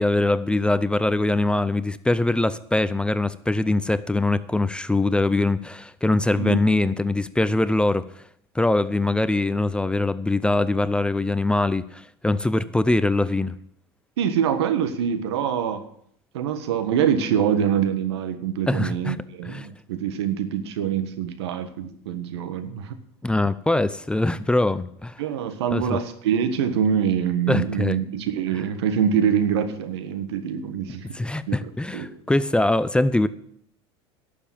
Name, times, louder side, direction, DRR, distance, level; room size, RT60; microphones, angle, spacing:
voice 1, 0.0-8.1 8.5-13.5 18.7-19.2 19.5-19.7 23.2-25.2 25.7-26.0 27.5-28.0 31.1-33.3, left 2 dB, 5° left, 15 dB, 0.6 m, -22 dB
voice 2, 14.2-15.8 16.3-22.9 25.2-31.1 31.5-32.1, right 8 dB, 80° right, 10 dB, 1.5 m, -25 dB
11.5 x 7.1 x 8.6 m, 0.67 s
hypercardioid pair, 95°, 14 cm